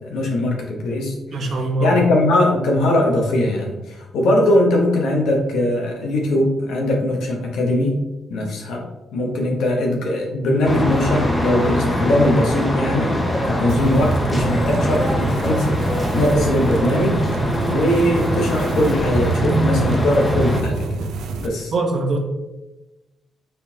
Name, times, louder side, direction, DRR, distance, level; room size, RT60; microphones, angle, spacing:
voice 1, 0.0-1.5 1.8-8.0 8.3-8.8 9.1-17.2 17.7-21.1 21.4-21.7, left 1 dB, 90° left, 0 dB, 1.1 m, -20 dB
voice 2, 1.3-2.0 21.7-22.2, right 2 dB, 50° right, 3 dB, 0.8 m, -22 dB
sound 1, 10.6-20.6, equal, 10° left, 0.7 m, -22 dB
sound 2, 13.7-21.5, right 4 dB, 85° right, 0.4 m, -27 dB
4.3 x 4.0 x 2.8 m, 1.0 s
cardioid pair, 135°, 0 cm